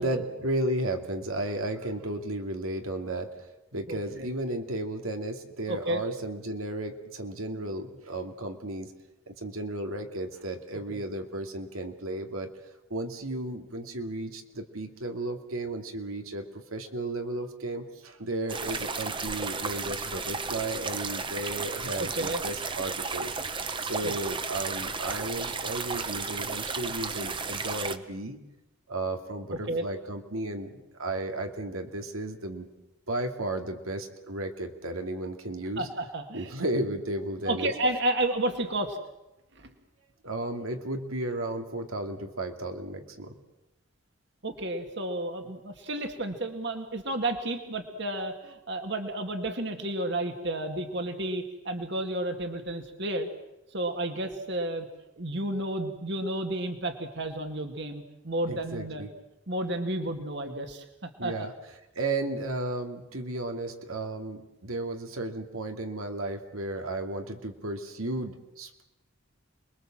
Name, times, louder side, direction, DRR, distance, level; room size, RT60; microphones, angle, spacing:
voice 1, 0.0-8.9 9.3-12.5 12.9-16.4 16.7-28.4 28.9-32.7 33.1-35.9 36.3-37.7 40.2-43.3 58.5-59.1 61.2-61.5 62.0-68.8, right 1 dB, 90° right, 5 dB, 2.6 m, -34 dB
voice 2, 3.9-4.3 5.7-6.0 10.9-11.0 22.0-22.4 24.0-24.1 29.7-29.9 35.8-36.5 37.5-39.0 39.6-39.7 44.4-53.3 53.7-54.9 55.2-59.0 59.5-60.8 61.2-61.3, right 1 dB, 55° right, 6 dB, 2.1 m, -31 dB
sound 1, 18.5-28.0, right 4 dB, 25° right, 1.0 m, -33 dB
29.5 x 22.0 x 7.6 m, 0.95 s
head